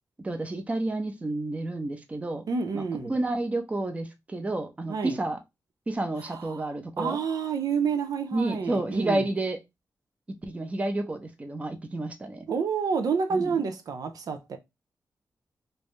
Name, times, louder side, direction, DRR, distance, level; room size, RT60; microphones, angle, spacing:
voice 1, 0.2-2.4 2.7-5.4 5.9-7.2 8.3-9.6 10.5-12.5 13.3-13.5, right 2 dB, 20° right, 0.6 m, -30 dB
voice 2, 2.5-3.1 4.9-5.2 6.2-6.7 7.0-9.3 12.5-14.6, right 5 dB, 70° right, 0.6 m, -29 dB
3.3 x 2.6 x 3.2 m
wide cardioid pair, 135°, 6 cm